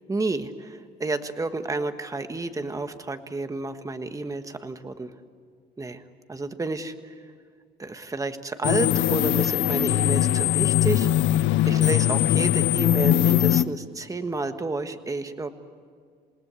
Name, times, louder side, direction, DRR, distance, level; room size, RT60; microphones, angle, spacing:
voice 1, 0.1-5.1 5.8-6.0 6.3-7.1 7.8-11.1 11.7-15.5, right 3 dB, 15° right, 8 dB, 1.4 m, -30 dB
sound 1, 8.6-13.6, left 13 dB, 85° left, 0.7 m, -21 dB
28.5 x 18.5 x 8.2 m, 2.1 s
cardioid pair, 125°, 19 cm